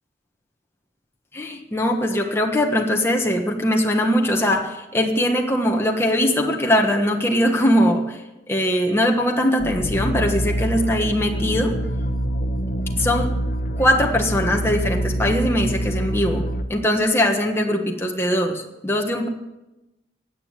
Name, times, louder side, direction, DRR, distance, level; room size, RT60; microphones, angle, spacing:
voice 1, 1.3-8.2 8.5-11.8 13.0-13.3 13.8-19.3, left 1 dB, 15° left, 1 dB, 1.4 m, -21 dB
sound 1, 9.6-16.6, right 1 dB, 45° left, 1.1 m, -25 dB
17.0 x 9.4 x 8.1 m, 1.0 s
head